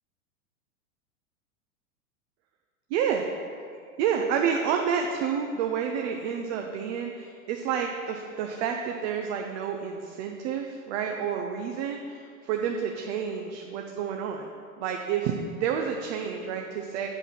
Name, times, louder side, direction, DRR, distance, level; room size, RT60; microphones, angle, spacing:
voice 1, 2.9-3.3 4.0-14.5 14.8-17.1, right 7 dB, 50° right, 2 dB, 0.8 m, -29 dB
8.0 x 5.5 x 6.0 m, 2.4 s
hypercardioid pair, 115°, 42 cm